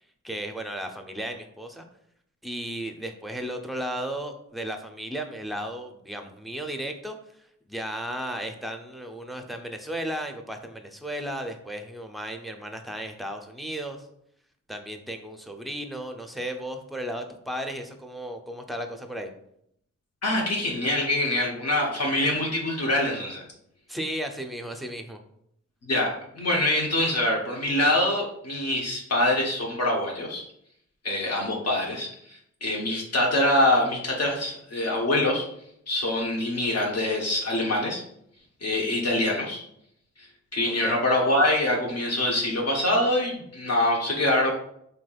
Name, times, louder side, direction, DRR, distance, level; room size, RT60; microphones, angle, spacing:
voice 1, 0.2-1.9 2.4-14.1 14.7-19.3 23.9-25.2 40.7-41.0, right 1 dB, ahead, 5 dB, 0.5 m, -35 dB
voice 2, 20.2-23.4 25.9-30.5 31.0-35.5 35.9-38.0 38.6-39.6 40.2-40.3 40.5-44.5, left 1 dB, 55° left, -2 dB, 0.8 m, -24 dB
3.3 x 2.8 x 2.3 m, 0.72 s
cardioid pair, 45°, 30 cm